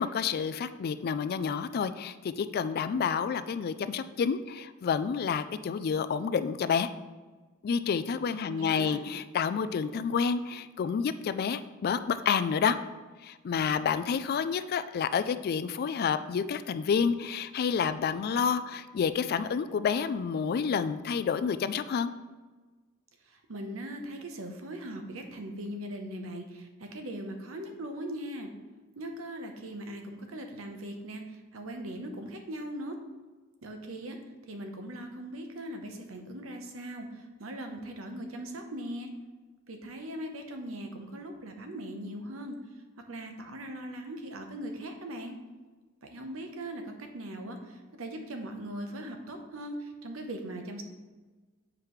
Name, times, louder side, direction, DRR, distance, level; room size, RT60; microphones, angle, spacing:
voice 1, 0.0-6.9 7.6-12.8 13.2-22.1, left 6 dB, 50° left, 12 dB, 0.3 m, -29 dB
voice 2, 8.4-9.0 23.2-28.5 29.0-33.0 33.6-34.2 34.5-39.1 39.7-42.6 43.1-45.4 46.0-50.8, right 1 dB, 85° right, 5 dB, 0.9 m, -40 dB
7.5 x 4.8 x 3.1 m, 1.3 s
head